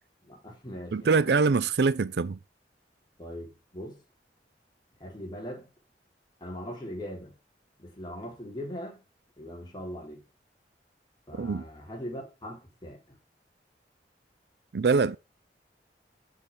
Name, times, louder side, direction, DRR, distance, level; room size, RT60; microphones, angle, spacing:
voice 1, 0.3-1.0 3.2-4.0 5.0-5.7 6.4-7.3 7.8-9.0 9.4-10.2 11.3-13.0, equal, 25° left, 4.0 m, -40 dB
voice 2, 0.9-2.4 11.4-11.7 14.7-15.2, right 4 dB, 65° right, 0.5 m, -24 dB
7.6 x 6.8 x 6.0 m
head